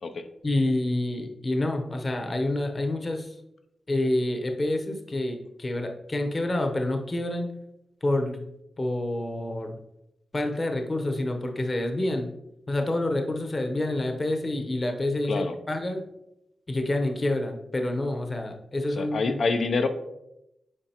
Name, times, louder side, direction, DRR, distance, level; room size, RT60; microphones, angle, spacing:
voice 1, 0.4-3.3 3.9-7.5 8.0-8.5 8.8-9.8 10.3-12.3 12.7-16.0 16.7-19.3, left 1 dB, 35° left, 4 dB, 0.9 m, -28 dB
voice 2, 15.3-15.6 18.9-19.9, left 4 dB, 65° left, 7 dB, 0.5 m, -26 dB
8.7 x 4.7 x 2.9 m, 0.86 s
cardioid pair, 85°, 0 cm